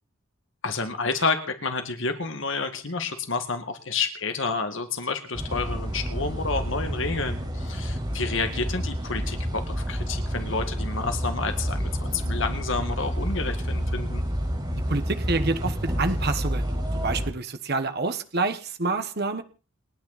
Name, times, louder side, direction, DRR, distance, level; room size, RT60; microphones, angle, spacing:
voice 1, 0.6-14.2, left 4 dB, 60° left, 7 dB, 2.1 m, -30 dB
sound 1, 5.3-17.3, equal, 20° right, 5.1 m, -29 dB
voice 2, 14.9-19.4, right 3 dB, 50° right, 8 dB, 1.3 m, -28 dB
29.0 x 9.7 x 4.2 m, 0.36 s
head